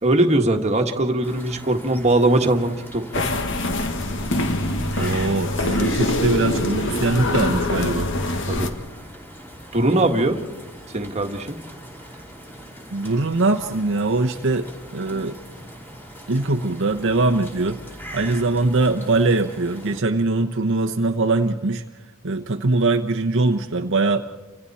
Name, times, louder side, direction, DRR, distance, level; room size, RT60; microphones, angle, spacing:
voice 1, 0.0-3.2 8.5-8.7 9.7-10.4 10.9-11.6, right 2 dB, 30° right, 3 dB, 1.6 m, -20 dB
sound 1, 1.2-20.0, equal, 10° left, 2.9 m, -41 dB
sound 2, 3.1-8.7, left 1 dB, 60° left, 1.7 m, -24 dB
voice 2, 5.0-8.1 12.9-14.7 14.9-15.4 16.3-17.8 18.1-21.8 22.2-24.2, right 3 dB, 60° right, 4 dB, 0.9 m, -22 dB
30.0 x 26.0 x 4.3 m, 1.2 s
head